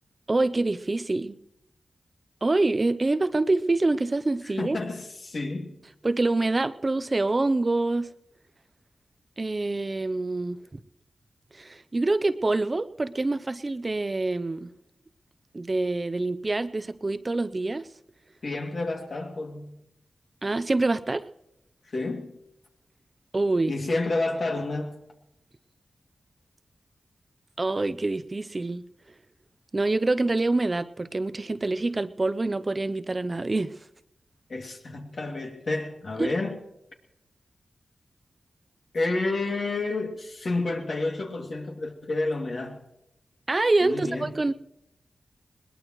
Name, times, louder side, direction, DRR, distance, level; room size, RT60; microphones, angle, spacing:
voice 1, 0.3-1.4 2.4-4.8 6.0-8.1 9.4-10.6 11.5-14.7 15.5-17.9 20.4-21.2 23.3-23.7 27.6-28.8 29.7-33.8 36.2-36.3 43.5-44.5, right 2 dB, 35° right, 12 dB, 0.6 m, -26 dB
voice 2, 4.6-5.8 18.4-19.8 21.9-22.3 23.7-25.0 34.5-36.6 38.9-42.8 43.8-44.3, left 2 dB, 65° left, 2 dB, 2.5 m, -30 dB
21.5 x 19.5 x 3.1 m, 0.83 s
cardioid pair, 60°, 0 cm